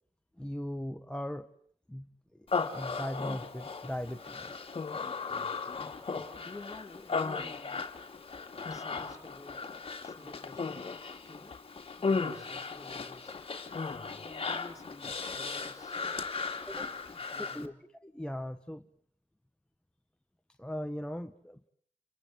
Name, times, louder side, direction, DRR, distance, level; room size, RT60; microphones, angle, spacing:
voice 1, 0.4-1.5 1.9-2.1 2.3-4.6 16.7-17.7 18.0-18.9 20.6-21.7, equal, 5° left, 6 dB, 1.4 m, -39 dB
Human voice, 2.5-17.7, left 4 dB, 45° left, 2.7 m, -36 dB
voice 2, 6.3-7.8 8.7-9.6 10.0-10.8 11.3-11.6 12.0-13.3 14.2-16.2 17.1-17.8, left 2 dB, 25° left, 4 dB, 3.7 m, -50 dB
29.5 x 23.5 x 7.9 m, 0.62 s
cardioid pair, 60°, 13 cm